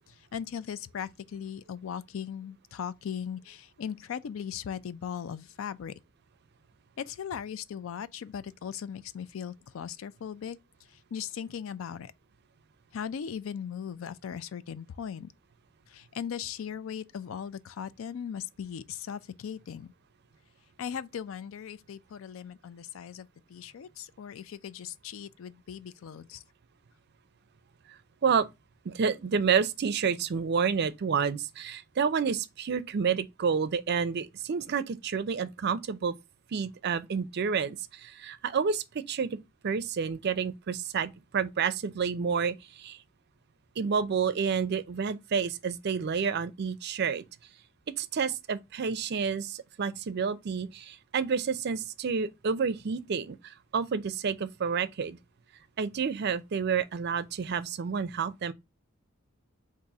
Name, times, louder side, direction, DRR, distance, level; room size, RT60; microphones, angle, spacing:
voice 1, 0.1-5.9 7.0-10.6 10.9-12.1 12.9-15.3 15.9-19.9 20.8-26.4, left 8 dB, 75° left, 0.4 m, -38 dB
voice 2, 28.8-36.1 36.5-39.4 39.6-43.0 43.8-47.2 48.0-55.2 55.8-58.5, right 6 dB, 55° right, 0.4 m, -29 dB
4.1 x 2.5 x 4.7 m
head